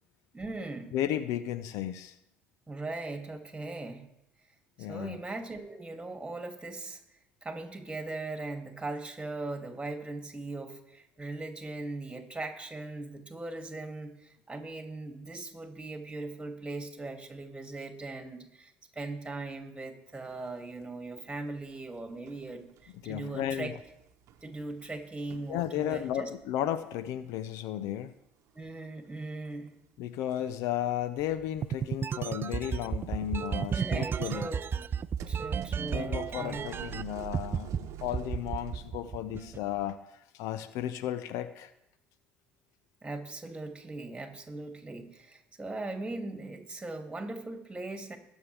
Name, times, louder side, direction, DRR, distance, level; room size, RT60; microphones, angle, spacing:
voice 1, 0.3-0.9 2.7-4.0 4.9-7.0 7.4-23.7 24.4-26.3 28.5-29.7 33.7-34.6 35.3-36.6 43.0-48.2, right 2 dB, 15° right, 4 dB, 2.6 m, -39 dB
voice 2, 0.9-2.1 4.8-5.2 23.0-23.7 25.5-28.1 30.0-34.5 35.8-40.0 40.3-41.7, left 11 dB, 70° left, 14 dB, 0.6 m, -34 dB
sound 1, 20.2-20.9 21.2-26.8 27.1-28.1 28.4-28.6 29.0-29.7 30.2-32.0 32.4-40.0, right 10 dB, 60° right, 0.9 m, -48 dB
sound 2, 31.6-37.0 37.3-37.8 38.1-39.6, right 7 dB, 40° right, 0.4 m, -32 dB
21.5 x 7.3 x 3.4 m, 0.82 s
hypercardioid pair, 60°, 6 cm